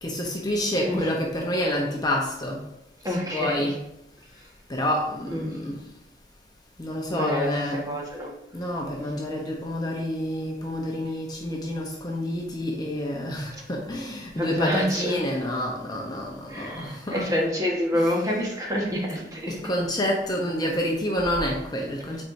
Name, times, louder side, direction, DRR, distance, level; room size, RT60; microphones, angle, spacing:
voice 1, 0.0-2.6 3.0-3.8 4.7-5.8 6.8-7.9 8.5-17.3 19.5-22.2, left 1 dB, 25° left, -1 dB, 0.8 m, -28 dB
voice 2, 3.0-3.7 5.3-5.5 7.1-8.3 14.3-15.2 16.5-19.6, equal, 20° right, -2 dB, 1.4 m, -27 dB
8.7 x 4.5 x 2.6 m, 0.85 s
head